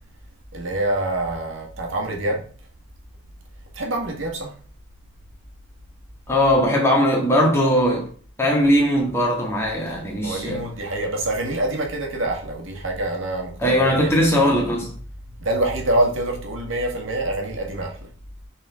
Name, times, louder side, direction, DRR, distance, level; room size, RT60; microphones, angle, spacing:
voice 1, 0.5-2.4 3.7-4.5 10.2-14.1 15.4-18.0, right 1 dB, 70° right, 1.8 m, -25 dB
voice 2, 6.3-8.1 8.4-10.6 13.6-14.9, equal, 10° left, 1.8 m, -19 dB
6.6 x 4.2 x 3.6 m
head